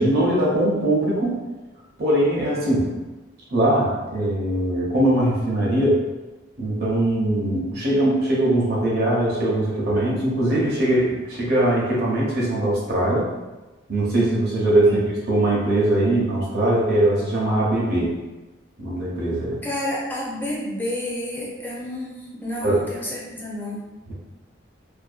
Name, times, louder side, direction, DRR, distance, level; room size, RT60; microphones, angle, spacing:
voice 1, 0.0-1.4 2.0-2.9 3.5-6.0 6.6-13.3 13.9-15.0 15.3-18.1 18.8-19.6 22.6-22.8 24.1-24.2, right 1 dB, 55° right, -5 dB, 0.7 m, -21 dB
voice 2, 19.6-23.8, left 1 dB, 10° left, -6 dB, 0.5 m, -30 dB
2.5 x 2.2 x 2.4 m, 1.1 s
head